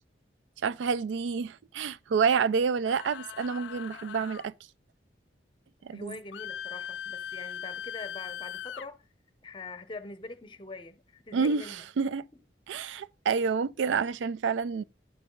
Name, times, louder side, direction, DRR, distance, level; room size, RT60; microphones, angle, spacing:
voice 1, 0.6-4.5 5.8-6.2 11.3-12.2 12.7-14.8, right 5 dB, 85° right, 0.4 m, -28 dB
sound 1, 2.9-4.5 6.3-8.9, left 9 dB, 80° left, 0.4 m, -40 dB
voice 2, 5.9-9.0 9.4-12.4, left 3 dB, 25° left, 0.7 m, -44 dB
10.5 x 5.6 x 3.8 m
head